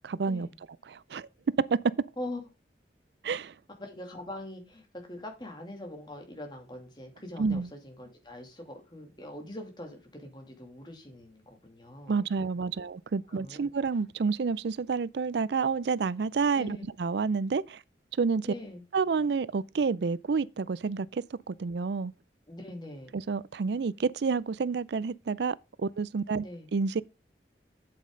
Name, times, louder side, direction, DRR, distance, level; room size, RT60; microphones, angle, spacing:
voice 1, 0.0-0.5 0.9-1.3 1.7-1.8 3.2-3.5 7.4-7.7 12.1-17.8 18.2-18.5 18.9-22.1 23.1-26.5 26.7-27.0, right 5 dB, 75° right, 0.4 m, -29 dB
voice 2, 3.8-12.2 12.5-12.7 13.3-13.7 16.5-16.8 18.4-18.8 22.5-23.2 26.4-26.7, left 1 dB, 25° left, 2.6 m, -43 dB
8.6 x 8.5 x 3.8 m
head